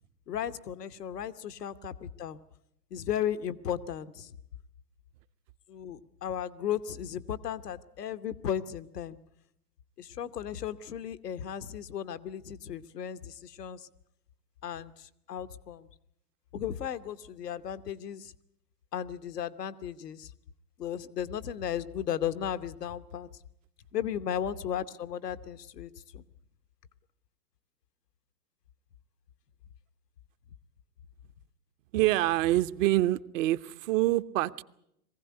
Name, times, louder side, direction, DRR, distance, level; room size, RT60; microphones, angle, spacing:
voice 1, 0.3-2.4 2.9-4.3 5.7-9.2 10.0-13.9 14.6-15.9 16.5-18.3 18.9-20.3 20.8-23.3 23.9-26.2, left 9 dB, 85° left, 13 dB, 1.1 m, -35 dB
voice 2, 31.9-34.6, right 16 dB, 55° right, 14 dB, 0.9 m, -26 dB
22.0 x 16.0 x 9.5 m, 0.78 s
hypercardioid pair, 110°, 46 cm